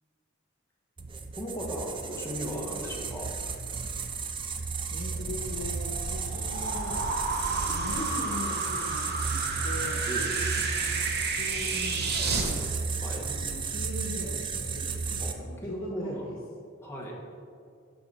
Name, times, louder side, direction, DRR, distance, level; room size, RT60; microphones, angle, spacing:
sound 1, 1.0-15.3, right 5 dB, 25° right, 0.4 m, -33 dB
voice 1, 1.4-3.3 10.1-10.3 13.0-13.2 15.2-16.3 16.8-17.2, equal, 10° left, -3 dB, 1.3 m, -37 dB
voice 2, 4.9-7.1 7.4-10.0 11.4-12.7 13.2-16.3, left 1 dB, 65° left, -3 dB, 1.2 m, -40 dB
sound 2, 5.1-12.5, right 3 dB, 50° right, 0.9 m, -32 dB
11.5 x 3.9 x 5.5 m, 2.3 s
head